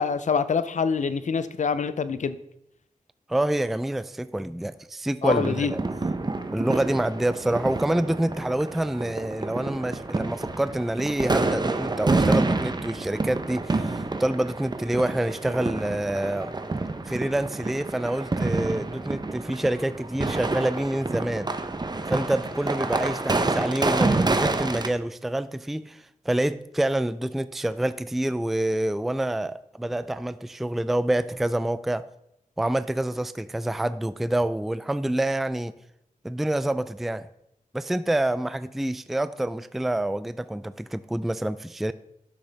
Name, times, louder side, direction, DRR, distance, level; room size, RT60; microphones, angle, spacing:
voice 1, 0.0-2.4 5.2-5.7, left 5 dB, 60° left, 0.6 m, -25 dB
voice 2, 3.3-5.8 6.5-16.5 17.1-21.5 22.1-32.1 32.6-35.7 36.2-37.3 37.7-41.9, right 1 dB, ahead, 0.3 m, -27 dB
sound 1, 5.3-24.9, right 3 dB, 30° right, 0.8 m, -28 dB
11.5 x 6.4 x 3.4 m
cardioid pair, 60°, 14 cm